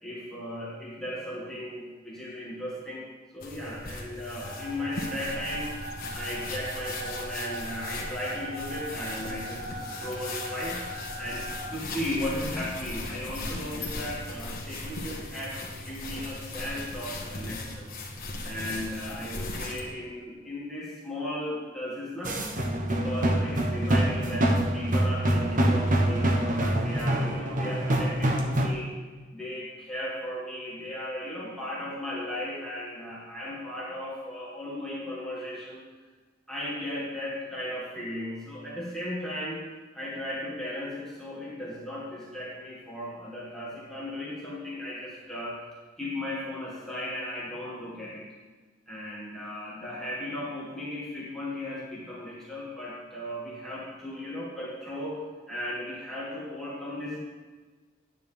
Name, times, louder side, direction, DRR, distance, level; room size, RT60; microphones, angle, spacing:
voice 1, 0.0-5.8 6.1-15.6 15.8-17.9 18.4-22.4 22.8-28.9 29.3-35.8 36.5-39.6 39.9-45.6 46.0-48.3 48.9-55.2 55.5-57.2, left 1 dB, ahead, -8 dB, 2.2 m, -36 dB
sound 1, 3.4-19.9, left 2 dB, 50° left, 1.5 m, -38 dB
sound 2, 4.4-11.7, right 1 dB, 85° right, 2.5 m, -40 dB
sound 3, 22.2-28.7, right 1 dB, 40° right, 1.0 m, -25 dB
11.0 x 9.4 x 3.6 m, 1.4 s
head